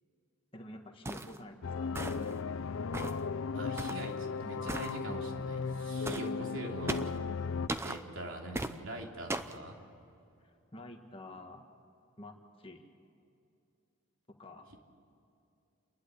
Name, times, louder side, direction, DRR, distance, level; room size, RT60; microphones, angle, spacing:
voice 1, 0.5-2.4 6.2-6.5 10.4-11.6 12.2-12.8 14.3-14.7, left 1 dB, 25° left, 3 dB, 1.7 m, -49 dB
sound 1, 1.0-1.4 1.9-2.4 2.9-3.2 3.8-4.1 4.7-4.9 6.0-6.3 6.9-7.2 7.7-8.0 8.5-8.8 9.3-9.6, right 1 dB, 10° right, 0.6 m, -37 dB
sound 2, 1.6-7.7, left 5 dB, 70° left, 0.5 m, -36 dB
voice 2, 3.5-7.1 7.8-9.8, right 1 dB, 65° right, 1 dB, 3.1 m, -43 dB
30.0 x 11.5 x 8.4 m, 2.7 s
head